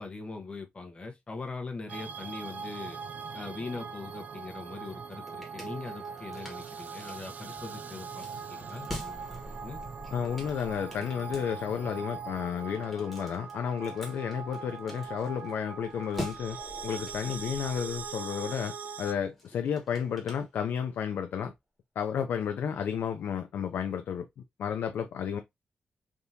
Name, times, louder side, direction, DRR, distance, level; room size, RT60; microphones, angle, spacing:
voice 1, 0.0-3.0 3.3-8.2 8.5-9.8, left 3 dB, 35° left, 0.9 m, -41 dB
sound 1, 1.9-19.1, right 5 dB, 55° right, 0.4 m, -41 dB
sound 2, 4.8-21.1, left 1 dB, ahead, 1.4 m, -47 dB
voice 2, 10.1-21.5 22.0-24.3 24.6-25.4, left 8 dB, 85° left, 0.4 m, -32 dB
3.5 x 2.8 x 2.6 m
wide cardioid pair, 115°, 3 cm